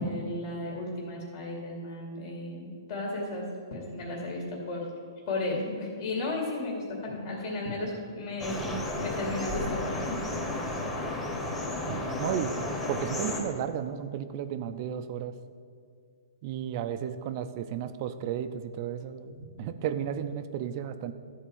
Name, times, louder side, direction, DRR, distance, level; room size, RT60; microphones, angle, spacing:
voice 1, 0.0-4.9 5.3-10.1, left 2 dB, 45° left, -2 dB, 2.3 m, -34 dB
sound 1, 8.4-13.4, left 2 dB, 10° left, 1.5 m, -33 dB
voice 2, 11.9-15.3 16.4-21.1, right 9 dB, 40° right, 10 dB, 0.6 m, -33 dB
13.0 x 4.5 x 7.2 m, 2.1 s
hypercardioid pair, 145°, 3 cm